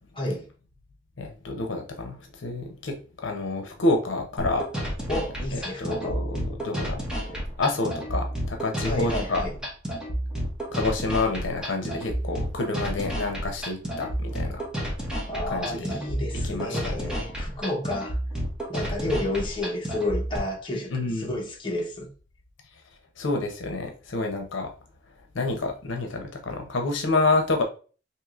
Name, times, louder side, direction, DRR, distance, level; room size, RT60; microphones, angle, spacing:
voice 1, 0.1-0.5 5.1-6.2 7.2-7.4 8.8-9.6 15.3-18.2 18.7-22.1, left 1 dB, 25° left, 0.9 m, -31 dB
voice 2, 1.2-3.0 3.2-4.7 5.5-7.3 7.6-9.4 10.7-14.6 15.5-15.9 16.4-17.1 20.9-21.3 23.2-24.7 25.3-27.6, left 2 dB, 75° left, 0.7 m, -28 dB
sound 1, 4.4-20.4, equal, 5° right, 1.0 m, -31 dB
4.6 x 2.9 x 2.4 m
head